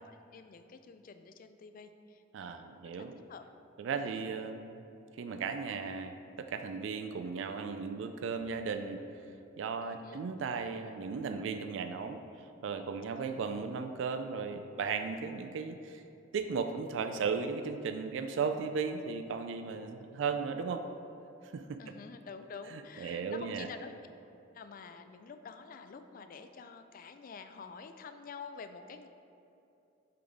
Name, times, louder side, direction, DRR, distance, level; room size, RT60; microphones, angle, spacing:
voice 1, 0.0-3.4 4.0-4.1 9.8-10.2 13.2-13.4 21.8-23.9 24.5-29.1, left 5 dB, 45° left, 9 dB, 0.3 m, -48 dB
voice 2, 2.3-3.1 3.8-4.8 5.2-9.0 9.6-12.2 12.6-16.0 16.3-20.8 21.4-21.8 22.7-23.7, right 5 dB, 70° right, 8 dB, 0.3 m, -36 dB
8.4 x 3.9 x 3.5 m, 2.8 s
head